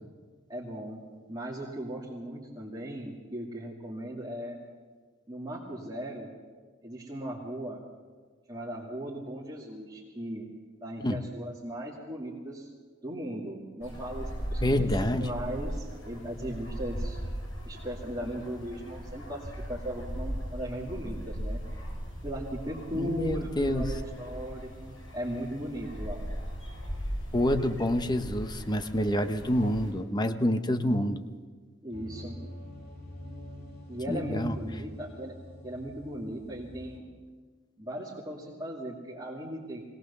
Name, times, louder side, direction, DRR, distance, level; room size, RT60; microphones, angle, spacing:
voice 1, 0.5-1.0 1.3-4.6 5.3-6.3 6.8-7.8 8.5-10.5 10.8-12.7 13.0-17.2 17.7-21.6 22.2-26.3 31.8-32.4 33.9-35.3 35.6-37.0 37.8-39.9, right 1 dB, 20° right, -5 dB, 2.3 m, -37 dB
sound 1, 13.8-29.9, equal, 80° left, 6.0 m, -38 dB
voice 2, 14.6-15.3 22.9-23.9 27.3-31.2 34.1-34.5, left 1 dB, 20° left, 9 dB, 1.0 m, -27 dB
sound 2, 31.9-37.0, left 1 dB, 55° left, 2.4 m, -45 dB
21.5 x 18.0 x 6.9 m, 1.5 s
head